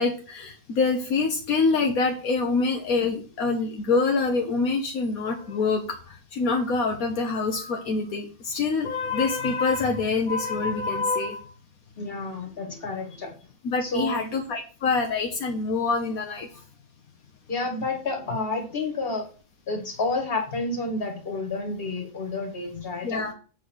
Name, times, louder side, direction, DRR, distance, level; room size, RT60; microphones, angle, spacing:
voice 1, 0.0-11.4 13.6-16.5 23.0-23.3, left 4 dB, 75° left, 2 dB, 1.4 m, -25 dB
voice 2, 12.0-13.3 13.8-14.3 17.5-19.3 19.7-23.2, left 3 dB, 40° left, 3 dB, 1.9 m, -30 dB
7.3 x 4.1 x 6.2 m, 0.38 s
omnidirectional pair, 1.5 m